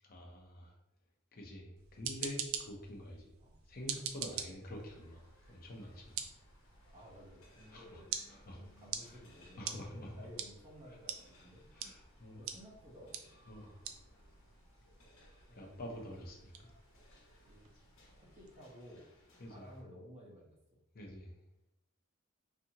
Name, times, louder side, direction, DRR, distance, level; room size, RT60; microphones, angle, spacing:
voice 1, 0.0-0.8 1.3-3.3 3.6-6.3 6.7-6.8 7.7-8.0 8.3-8.7 9.0-9.2 9.6-10.3 11.7-12.4 13.5-13.7 14.1-14.2 15.5-16.8 17.4-17.5 19.4-19.7 20.9-21.3, left 1 dB, 45° left, 0 dB, 0.6 m, -47 dB
sound 1, 1.8-18.6, right 8 dB, 80° right, 0.3 m, -47 dB
sound 2, 4.6-19.8, left 1 dB, 80° left, 1.0 m, -65 dB
voice 2, 6.9-8.2 8.5-9.8 10.2-11.7 12.3-13.3 13.6-13.8 15.5-16.0 17.5-17.7 18.1-19.1 19.5-20.8, equal, 35° right, -4 dB, 0.8 m, -55 dB
2.7 x 2.5 x 2.7 m, 0.82 s
head